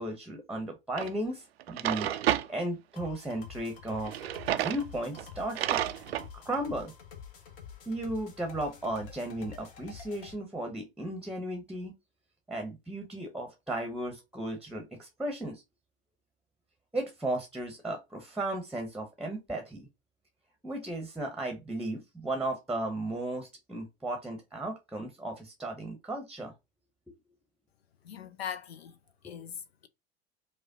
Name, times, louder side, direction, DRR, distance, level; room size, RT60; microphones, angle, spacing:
voice 1, 0.0-2.1 2.5-4.1 4.6-5.8 6.3-6.9 7.9-11.9 12.5-15.6 16.9-19.9 20.6-26.5, right 1 dB, ahead, 0.8 m, -35 dB
Drawer open or close, 1.0-1.1 1.6-2.5 4.0-4.8 5.2-5.3 5.6-6.3, right 12 dB, 70° right, 0.5 m, -30 dB
sound 1, 3.0-10.3, left 7 dB, 60° left, 1.0 m, -48 dB
voice 2, 28.0-29.0 29.2-29.9, left 8 dB, 75° left, 0.6 m, -40 dB
4.9 x 2.2 x 2.7 m
figure-of-eight pair, 75°, 32 cm